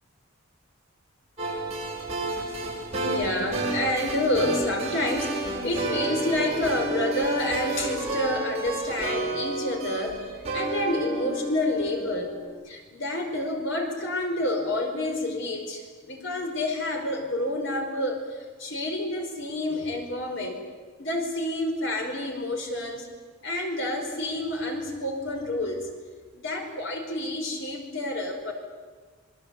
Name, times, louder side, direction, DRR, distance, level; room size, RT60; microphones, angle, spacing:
Positive tune, 1.4-12.5, right 2 dB, 30° right, 7.1 m, -31 dB
voice 1, 2.9-12.3 12.6-20.6 21.0-23.1 23.4-25.9 26.3-28.5, left 1 dB, 60° left, 3 dB, 5.0 m, -29 dB
27.5 x 23.5 x 8.4 m, 1.4 s
head